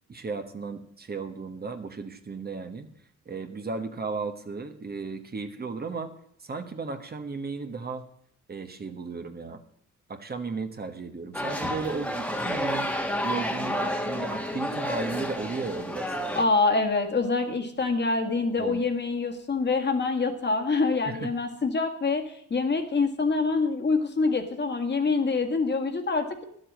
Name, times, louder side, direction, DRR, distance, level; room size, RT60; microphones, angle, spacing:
voice 1, 0.1-2.9 3.2-6.1 6.4-8.1 8.5-9.6 10.1-12.9 13.2-16.2 18.6-18.8 21.0-21.3, right 4 dB, 30° right, 7 dB, 1.3 m, -35 dB
sound 1, 11.3-16.4, equal, 5° left, 1.5 m, -30 dB
voice 2, 16.4-22.2 22.5-26.4, left 3 dB, 35° left, 5 dB, 1.8 m, -25 dB
11.0 x 7.8 x 7.4 m, 0.67 s
cardioid pair, 90°, 30 cm